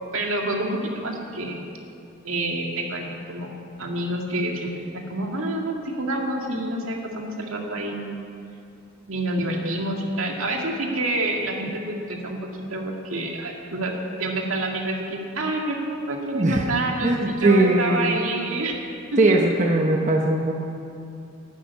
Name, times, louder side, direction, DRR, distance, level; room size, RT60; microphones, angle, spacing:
voice 1, 0.1-1.7 2.2-3.5 3.8-8.2 9.1-13.9 14.2-18.7 19.1-19.4, right 2 dB, 75° right, 1 dB, 2.1 m, -28 dB
voice 2, 16.3-16.7 17.0-18.2 19.2-20.5, right 2 dB, 35° right, 1 dB, 0.9 m, -20 dB
11.5 x 11.5 x 8.4 m, 2.5 s
head